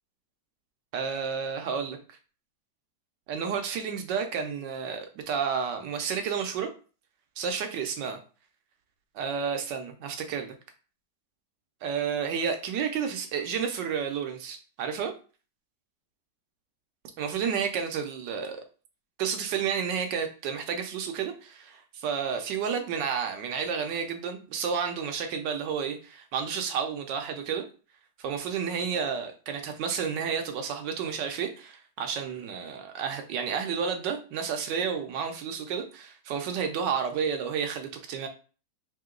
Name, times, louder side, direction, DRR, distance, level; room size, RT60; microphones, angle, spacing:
voice 1, 0.9-2.0 3.3-6.7 7.4-8.2 9.1-10.5 11.8-15.1 17.2-18.6 19.2-27.6 28.2-38.3, right 6 dB, 90° right, 5 dB, 1.4 m, -31 dB
3.5 x 2.8 x 3.7 m, 0.37 s
omnidirectional pair, 1.9 m